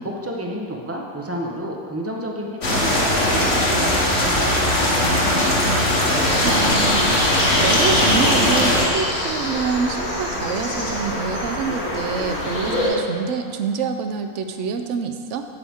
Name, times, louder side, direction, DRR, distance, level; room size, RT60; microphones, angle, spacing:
voice 1, 0.0-4.8, right 1 dB, 20° right, 0 dB, 0.4 m, -30 dB
sound 1, 2.6-8.9, left 1 dB, 50° left, 1.3 m, -19 dB
voice 2, 5.0-15.5, right 5 dB, 65° right, 6 dB, 0.8 m, -27 dB
sound 2, 6.2-12.9, left 1 dB, 70° left, 2.7 m, -24 dB
8.8 x 7.6 x 3.5 m, 2.2 s
omnidirectional pair, 1.5 m